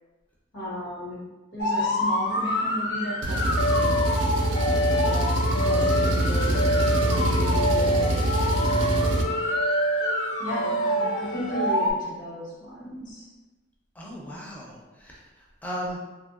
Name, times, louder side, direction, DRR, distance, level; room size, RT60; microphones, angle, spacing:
voice 1, 0.5-1.2 1.5-4.3 5.0-6.7 7.1-8.3 8.6-9.3 10.4-13.3 14.0-14.3, equal, 90° left, -7 dB, 1.3 m, -35 dB
sound 1, 1.6-11.9, left 1 dB, 65° left, 0.4 m, -26 dB
Engine, 3.2-9.2, right 2 dB, 75° right, 0.4 m, -25 dB
voice 2, 13.9-16.0, equal, 10° left, -4 dB, 0.5 m, -37 dB
3.0 x 2.6 x 2.4 m, 1.2 s
head